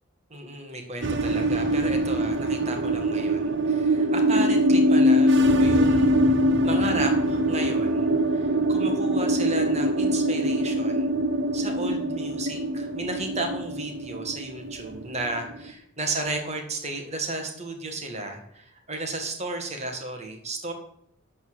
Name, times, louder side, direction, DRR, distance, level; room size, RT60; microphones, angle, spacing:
voice 1, 0.3-6.1 6.6-11.1 11.5-20.7, right 2 dB, 30° right, 4 dB, 1.9 m, -33 dB
sound 1, 1.0-15.7, equal, 60° right, 0.8 m, -23 dB
12.0 x 4.3 x 8.0 m, 0.74 s
head